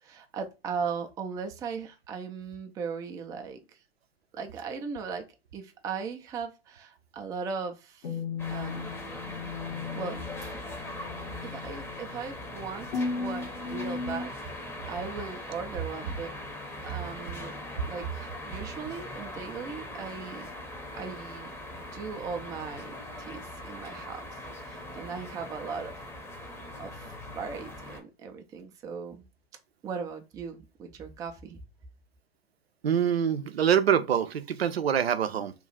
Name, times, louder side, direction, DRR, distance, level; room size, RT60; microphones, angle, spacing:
voice 1, 0.0-3.6 4.3-5.2 5.5-8.2 8.5-8.9 9.4-9.5 9.9-10.5 11.4-14.4 14.9-16.3 16.8-17.6 17.9-20.5 20.9-21.5 21.9-22.9 23.3-24.2 24.6-26.0 26.4-26.5 26.8-29.2 29.8-31.6, right 5 dB, 10° right, 0.3 m, -38 dB
sound 1, 8.0-14.3, left 4 dB, 65° left, 1.0 m, -36 dB
sound 2, 8.4-28.0, left 1 dB, 10° left, 0.7 m, -41 dB
voice 2, 32.8-35.5, right 8 dB, 85° right, 0.5 m, -25 dB
2.9 x 2.3 x 3.9 m
figure-of-eight pair, 100°, 30 cm